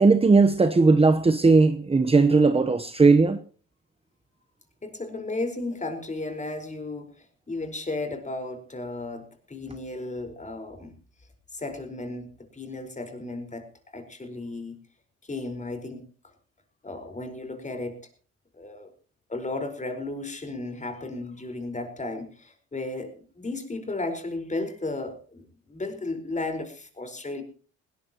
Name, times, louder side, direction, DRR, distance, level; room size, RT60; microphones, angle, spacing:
voice 1, 0.0-3.4, right 3 dB, 20° right, 1.0 m, -18 dB
voice 2, 4.8-10.9 11.5-14.8 15.3-16.0 16.8-18.0 18.5-18.9 19.3-25.4 25.7-27.4, left 2 dB, 25° left, 4.8 m, -34 dB
20.0 x 17.5 x 3.0 m
cardioid pair, 90°, 30 cm